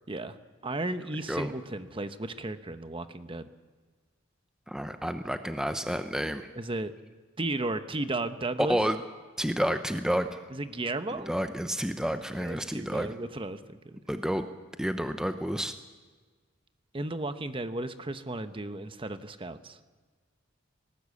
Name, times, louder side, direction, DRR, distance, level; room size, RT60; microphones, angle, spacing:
voice 1, 0.6-3.5 6.6-6.9 7.4-8.8 10.5-11.3 12.0-12.1 12.4-14.0 16.9-19.8, right 2 dB, 25° right, 10 dB, 1.0 m, -34 dB
voice 2, 4.7-6.5 8.7-9.0 9.4-10.4 11.1-13.1 14.1-14.5 14.8-15.7, equal, 5° right, 8 dB, 0.8 m, -30 dB
19.5 x 18.5 x 8.5 m, 1.4 s
head